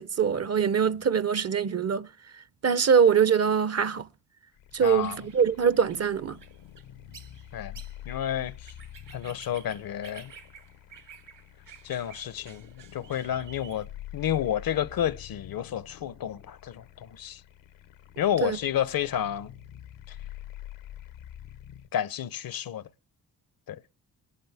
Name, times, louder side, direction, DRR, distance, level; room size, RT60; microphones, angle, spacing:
voice 1, 0.0-2.1 2.6-4.1 4.7-6.4 18.4-18.6, right 7 dB, 35° right, 0.7 m, -23 dB
sound 1, 4.6-21.9, left 12 dB, 90° left, 1.1 m, -47 dB
voice 2, 4.8-5.2 7.5-7.8 8.1-8.5 9.1-10.3 11.8-13.9 14.1-17.4 18.2-19.5 21.9-22.8 23.7-23.8, left 10 dB, 55° left, 0.7 m, -30 dB
sound 2, 4.8-13.8, right 7 dB, 75° right, 2.7 m, -52 dB
22.5 x 11.0 x 3.4 m
supercardioid pair, 55°, 42 cm